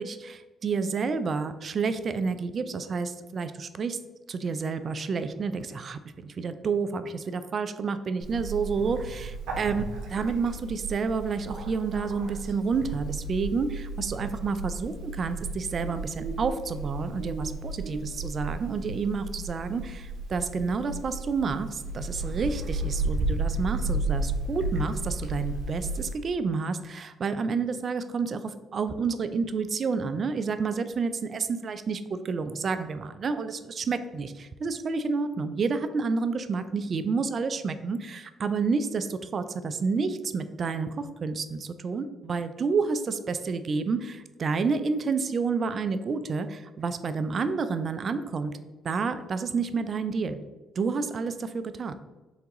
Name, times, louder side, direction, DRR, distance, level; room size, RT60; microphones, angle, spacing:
voice 1, 0.0-4.0 4.3-9.3 9.6-9.8 10.1-48.6 48.8-50.4 50.8-51.9, right 4 dB, 50° right, 10 dB, 0.4 m, -29 dB
Bird, 8.2-26.2, right 2 dB, 80° right, 0.7 m, -33 dB
3.9 x 3.4 x 2.9 m, 1.2 s
supercardioid pair, 60°, 0 cm